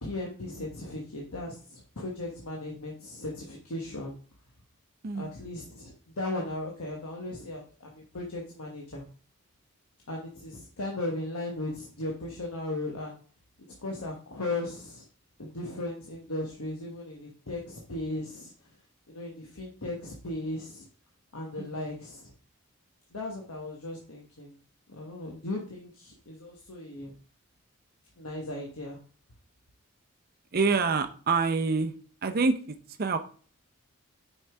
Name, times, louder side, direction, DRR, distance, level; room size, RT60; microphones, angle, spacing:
voice 1, 0.0-4.2 5.1-9.0 10.1-13.2 13.8-15.0 15.4-18.5 19.1-20.9 21.3-22.3 23.1-24.5 24.9-27.1 28.2-29.0, left 2 dB, 85° left, -1 dB, 1.2 m, -37 dB
voice 2, 5.0-5.4 21.6-21.7 30.5-31.9 32.2-33.2, right 4 dB, 45° right, 7 dB, 0.6 m, -27 dB
6.2 x 5.5 x 3.4 m, 0.42 s
head